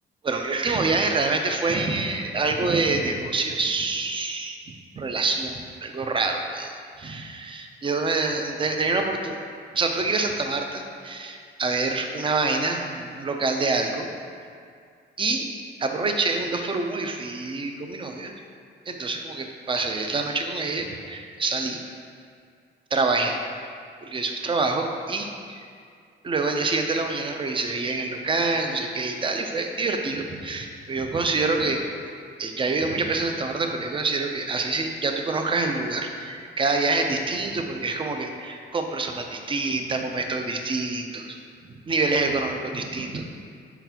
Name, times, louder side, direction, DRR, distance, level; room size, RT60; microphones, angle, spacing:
voice 1, 0.2-9.4 9.7-14.1 15.2-15.5 15.8-18.3 18.9-21.8 22.9-23.4 24.0-25.7 26.2-31.8 32.4-41.3 41.9-43.2, right 3 dB, 25° right, 4 dB, 0.4 m, -26 dB
4.8 x 3.8 x 2.8 m, 2.2 s
cardioid pair, 90°, 20 cm